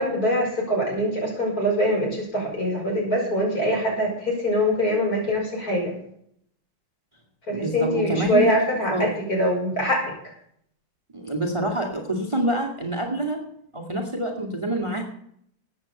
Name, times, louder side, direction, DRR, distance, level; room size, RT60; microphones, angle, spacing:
voice 1, 0.0-5.9 7.5-10.1, equal, 50° left, -1 dB, 6.1 m, -23 dB
voice 2, 7.5-8.5 8.8-9.1 11.1-13.4 13.7-15.0, right 1 dB, 15° right, 3 dB, 2.3 m, -26 dB
14.0 x 9.3 x 6.7 m, 0.68 s
omnidirectional pair, 2.0 m